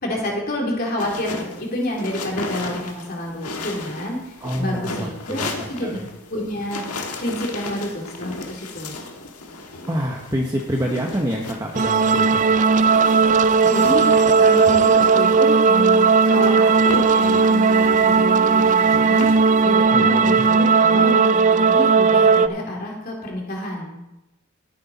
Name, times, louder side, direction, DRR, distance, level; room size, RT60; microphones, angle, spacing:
voice 1, 0.0-6.0 6.3-6.8 7.2-8.9 13.6-14.1 14.4-19.3 19.6-24.0, left 1 dB, 40° left, -2 dB, 3.1 m, -28 dB
sound 1, 1.0-19.6, left 2 dB, 90° left, 1.5 m, -35 dB
voice 2, 4.4-5.5 5.8-6.0 9.9-12.4 19.9-20.4, equal, 15° right, 0 dB, 1.0 m, -26 dB
sound 2, 11.7-22.5, right 5 dB, 35° right, 0.4 m, -16 dB
13.5 x 10.0 x 4.2 m, 0.96 s
head